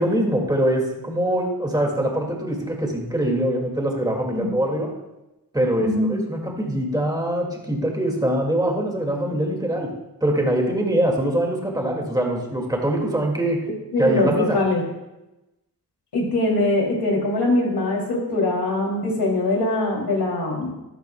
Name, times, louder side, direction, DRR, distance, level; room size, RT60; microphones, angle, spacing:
voice 1, 0.0-4.9 5.5-9.9 10.2-13.6 14.0-14.6, right 1 dB, 10° right, 0 dB, 2.2 m, -23 dB
voice 2, 5.8-6.2 13.9-14.8 16.1-20.7, left 2 dB, 85° left, -1 dB, 3.0 m, -22 dB
12.5 x 12.5 x 2.3 m, 0.97 s
wide cardioid pair, 95°, 39 cm